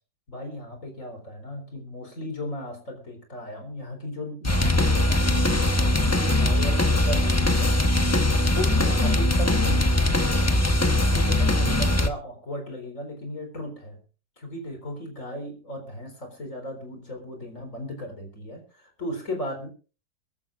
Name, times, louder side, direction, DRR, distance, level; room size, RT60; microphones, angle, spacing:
voice 1, 0.3-8.2 8.5-10.7 11.0-14.0 14.4-19.7, left 1 dB, 45° left, 4 dB, 4.5 m, -36 dB
sound 1, 4.4-12.1, left 1 dB, 10° left, 0.8 m, -21 dB
22.5 x 14.0 x 2.5 m, 0.36 s
omnidirectional pair, 1.9 m